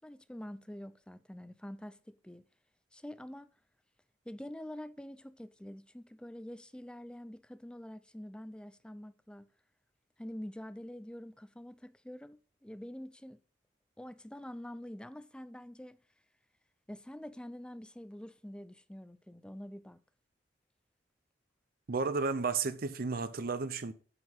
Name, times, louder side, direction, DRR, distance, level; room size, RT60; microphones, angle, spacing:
voice 1, 0.0-2.4 2.9-3.5 4.3-9.5 10.2-13.4 14.0-16.0 16.9-20.0, left 1 dB, 5° left, 0.4 m, -46 dB
voice 2, 21.9-23.9, right 4 dB, 55° right, 0.6 m, -33 dB
8.0 x 5.6 x 5.6 m
head